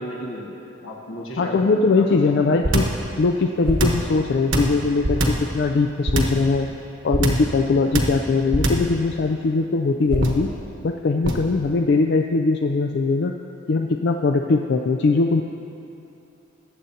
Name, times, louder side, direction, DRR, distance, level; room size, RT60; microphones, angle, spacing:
voice 1, 0.0-2.4, equal, 85° left, -2 dB, 1.7 m, -34 dB
voice 2, 1.4-2.9 3.2-6.7 7.0-10.5 10.8-13.3 13.7-15.4, left 3 dB, 55° left, 4 dB, 0.4 m, -21 dB
sound 1, 2.6-3.0 3.6-4.1 4.5-5.5 6.1-6.4 7.1-7.5 7.9-8.2 8.5-8.9 10.1-10.5 11.2-11.5, right 1 dB, 65° right, 1.1 m, -21 dB
21.0 x 7.6 x 2.8 m, 2.8 s
head